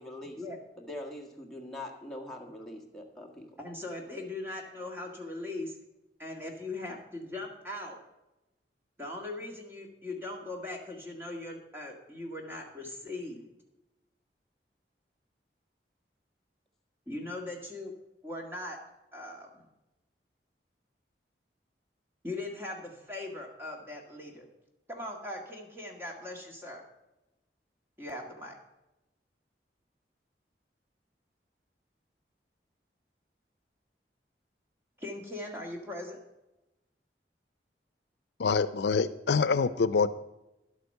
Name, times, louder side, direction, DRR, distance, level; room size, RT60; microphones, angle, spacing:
voice 1, 0.0-0.4 0.8-3.5, left 1 dB, 5° left, -1 dB, 1.5 m, -43 dB
voice 2, 3.6-5.8 6.2-8.0 9.0-13.5 17.1-17.9 18.2-18.8 19.1-19.7 22.2-24.5 24.9-26.8 28.0-28.6 35.0-36.2, left 2 dB, 15° right, 1 dB, 1.8 m, -40 dB
voice 3, 38.4-40.1, left 5 dB, 75° left, 14 dB, 0.5 m, -25 dB
11.0 x 8.3 x 5.5 m, 0.97 s
head